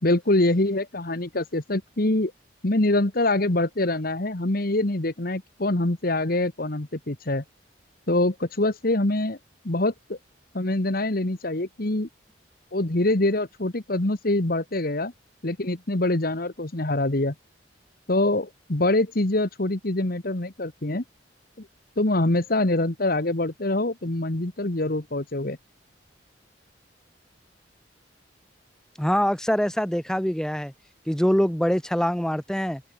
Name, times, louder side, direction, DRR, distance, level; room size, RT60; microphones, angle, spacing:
voice 1, 0.0-2.3 2.6-7.4 8.1-9.4 9.6-10.2 10.5-12.1 12.7-15.1 15.4-17.3 18.1-21.0 21.6-21.7 22.0-25.6, left 2 dB, 50° left, 1.6 m, -24 dB
voice 2, 29.0-30.7 31.1-32.8, equal, 5° left, 0.8 m, -24 dB
open air
head